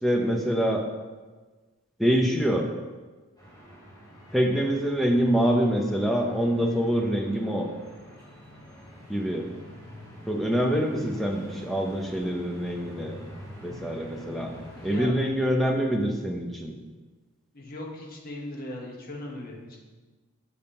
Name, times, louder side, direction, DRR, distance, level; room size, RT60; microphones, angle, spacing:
voice 1, 0.0-0.8 2.0-2.7 4.3-7.7 9.1-9.5 10.3-13.2 13.6-14.5 14.8-16.7, equal, ahead, 1 dB, 0.4 m, -25 dB
sound 1, 3.4-15.0, equal, 20° left, 1.3 m, -46 dB
voice 2, 14.7-15.1 17.5-19.8, left 1 dB, 40° left, -1 dB, 0.9 m, -38 dB
6.7 x 2.8 x 5.2 m, 1.3 s
head